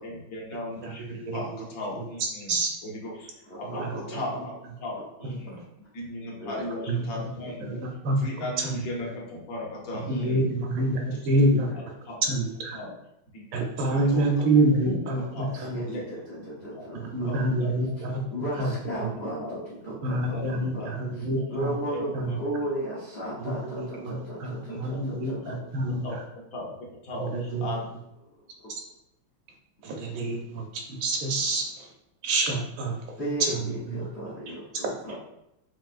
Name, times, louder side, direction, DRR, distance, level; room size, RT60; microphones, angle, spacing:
voice 1, 0.0-3.3 3.6-4.5 4.8-5.6 5.9-7.8 8.2-10.4 12.1-12.2 12.7-12.9 13.3-15.0 15.3-15.6 15.9-16.0 16.4-16.5 16.7-16.9 17.2-17.7 18.6-18.7 19.4-19.6 20.1-21.5 21.9-22.4 23.9-24.4 24.6-25.0 25.4-25.6 26.0-26.2 26.5-27.9, left 1 dB, 55° left, -3 dB, 1.1 m, -37 dB
voice 2, 0.8-1.5 2.0-2.1 2.5-2.7 3.6-3.9 6.9-7.2 7.6-8.3 8.6-8.7 10.1-11.7 12.2-12.8 13.5-15.8 16.9-18.2 18.6-18.7 19.0-19.1 20.0-21.7 22.1-22.3 23.4-26.0 27.1-27.7 28.7-28.8 29.8-31.9 32.2-33.6 33.9-34.1 34.5-34.6, right 2 dB, 75° right, 1 dB, 1.4 m, -27 dB
voice 3, 3.5-4.2 5.0-5.1 6.4-6.7 10.6-10.7 11.1-11.2 11.6-11.8 15.5-17.5 18.3-21.0 21.5-25.4 28.6-28.7 33.2-35.1, right 1 dB, 80° left, -6 dB, 0.5 m, -35 dB
5.9 x 2.5 x 2.5 m, 0.82 s
omnidirectional pair, 2.3 m